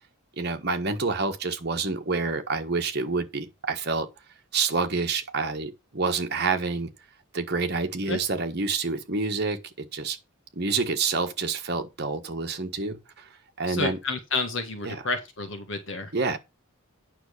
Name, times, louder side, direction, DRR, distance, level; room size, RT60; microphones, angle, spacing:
voice 1, 0.4-4.1 4.5-6.9 7.3-10.2 10.5-13.3 13.6-14.0 14.8-15.1 16.1-16.4, right 4 dB, 50° right, 1.4 m, -28 dB
voice 2, 13.7-16.1, left 3 dB, 60° left, 1.7 m, -30 dB
9.2 x 6.1 x 4.9 m
head